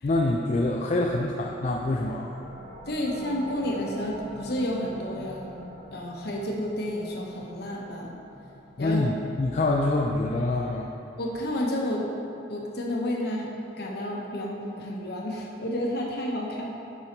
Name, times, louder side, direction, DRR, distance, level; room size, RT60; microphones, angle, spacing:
voice 1, 0.0-2.3 8.8-10.9, left 2 dB, 35° left, 0 dB, 0.3 m, -25 dB
sound 1, 1.9-13.2, equal, 30° right, 1.4 m, -47 dB
voice 2, 2.9-5.6 5.9-8.1 8.8-9.0 11.2-12.0 12.5-13.5 13.8-16.7, left 1 dB, 55° left, -2 dB, 1.0 m, -30 dB
5.8 x 5.5 x 4.5 m, 2.6 s
head